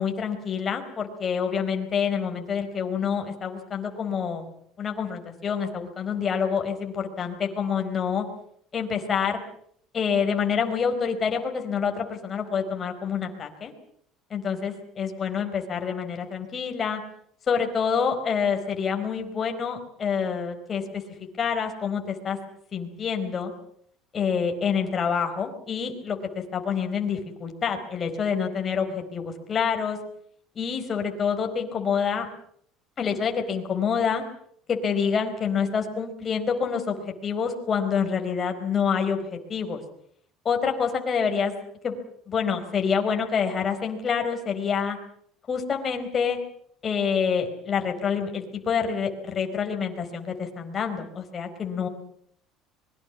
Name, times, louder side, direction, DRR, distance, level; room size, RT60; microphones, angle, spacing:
voice 1, 0.0-4.5 4.8-8.3 8.7-9.4 9.9-13.7 14.3-17.0 17.5-21.0 21.4-22.4 22.7-23.5 24.1-30.0 30.5-32.3 33.0-34.2 34.7-39.8 40.4-41.5 41.8-42.0 42.3-45.0 45.5-46.4 46.8-51.9, left 6 dB, 30° left, 4 dB, 4.5 m, -27 dB
25.5 x 22.0 x 7.2 m, 0.66 s
cardioid pair, 140°, 0 cm